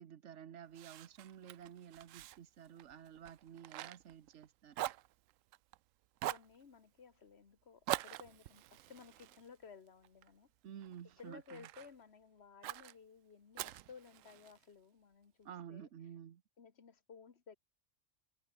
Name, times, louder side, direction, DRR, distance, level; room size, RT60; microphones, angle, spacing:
voice 1, 0.0-4.9 10.6-11.7 15.4-16.4, right 9 dB, 70° right, 1.3 m, -52 dB
Fire, 0.7-4.5 4.7-5.8 6.2-6.6 7.9-10.3 10.8-11.9 12.6-12.9 13.6-14.6, right 14 dB, 90° right, 1.0 m, -44 dB
voice 2, 6.3-10.5 11.2-15.9 16.6-17.6, left 6 dB, 55° left, 1.7 m, -57 dB
omnidirectional pair, 1.3 m